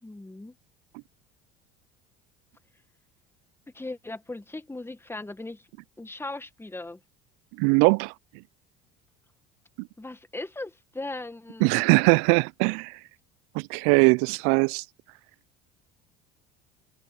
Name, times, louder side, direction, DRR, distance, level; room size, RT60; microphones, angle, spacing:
voice 1, 0.0-0.5 3.7-5.7 6.0-7.0 10.0-11.8, left 2 dB, 10° left, 1.7 m, -38 dB
voice 2, 7.6-8.1 11.6-13.0 13.5-14.8, right 32 dB, 70° right, 0.5 m, -21 dB
hypercardioid pair, 80°, 29 cm